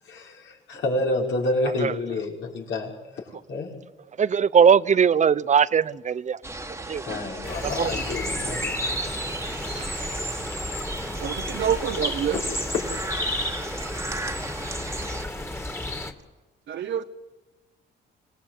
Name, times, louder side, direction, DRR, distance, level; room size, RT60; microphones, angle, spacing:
voice 1, 0.1-3.2 3.5-3.7 7.1-8.9, left 2 dB, 70° left, 5.7 m, -29 dB
voice 2, 4.2-6.4 6.9-7.0 7.8-8.0 9.7-9.8, right 7 dB, 35° right, 0.7 m, -20 dB
sound 1, 6.4-15.2, right 2 dB, 15° right, 1.7 m, -34 dB
sound 2, 7.4-16.1, left 1 dB, 10° left, 2.5 m, -32 dB
voice 3, 11.2-12.4 16.7-17.0, right 9 dB, 65° right, 1.1 m, -27 dB
25.5 x 19.0 x 8.2 m
cardioid pair, 90°, 20 cm